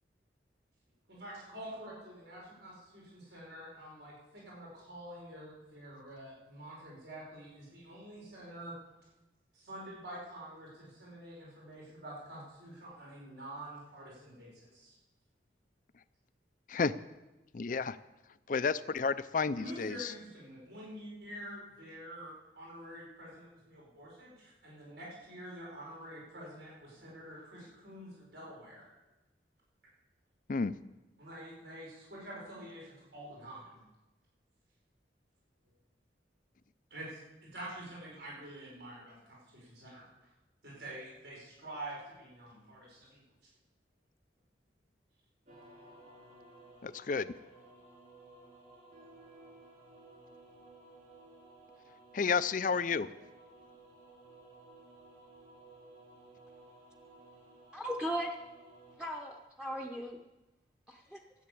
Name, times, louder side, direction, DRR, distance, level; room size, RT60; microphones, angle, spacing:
voice 1, 1.1-8.8 9.5-15.0 19.6-28.9 31.2-33.8 36.9-40.0 40.6-43.2, right 1 dB, 75° right, -4 dB, 5.4 m, -47 dB
voice 2, 17.5-18.0 18.5-20.1 30.5-30.7 46.8-47.3 52.1-53.1, left 5 dB, 50° left, 15 dB, 0.5 m, -31 dB
sound 1, 45.5-59.0, right 2 dB, 50° right, 5.0 m, -56 dB
voice 3, 57.7-58.4 59.0-60.2 60.9-61.2, equal, 5° right, 1 dB, 0.9 m, -37 dB
13.5 x 8.1 x 8.4 m, 1.0 s
head